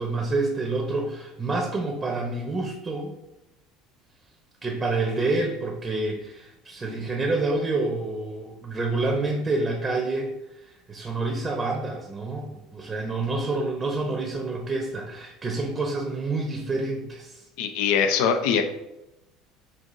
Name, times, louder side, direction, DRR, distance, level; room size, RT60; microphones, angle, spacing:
voice 1, 0.0-3.2 4.6-10.3 10.9-17.4, right 2 dB, 25° right, 1 dB, 0.7 m, -28 dB
voice 2, 17.6-18.6, left 7 dB, 70° left, 6 dB, 0.5 m, -22 dB
5.5 x 2.5 x 2.6 m, 0.93 s
hypercardioid pair, 75°, 0 cm